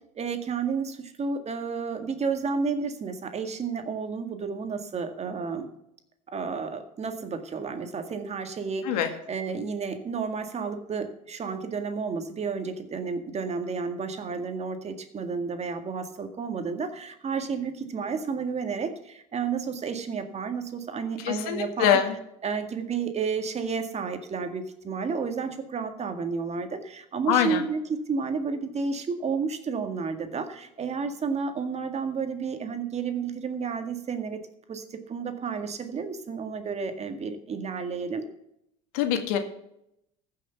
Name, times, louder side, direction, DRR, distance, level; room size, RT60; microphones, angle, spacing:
voice 1, 0.2-5.7 6.3-22.0 22.4-34.4 34.7-38.3, right 5 dB, 35° right, 7 dB, 2.0 m, -31 dB
voice 2, 21.2-22.1 27.3-27.6 38.9-39.4, left 9 dB, 80° left, 6 dB, 2.0 m, -24 dB
15.0 x 6.6 x 6.8 m, 0.79 s
supercardioid pair, 90°, 19 cm